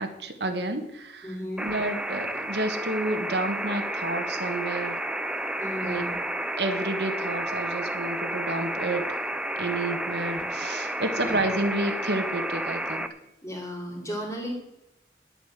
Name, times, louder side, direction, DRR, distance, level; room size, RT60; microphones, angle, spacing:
voice 1, 0.0-1.3 1.6-5.0 5.8-6.0 6.6-9.3 9.6-13.1, right 2 dB, 75° right, 5 dB, 1.6 m, -30 dB
voice 2, 1.2-1.7 5.6-6.2 10.3-10.4 11.2-11.5 13.4-14.5, equal, 15° left, 0 dB, 3.0 m, -34 dB
sound 1, 1.6-13.1, right 1 dB, 5° right, 0.6 m, -31 dB
11.0 x 8.3 x 7.5 m, 0.90 s
head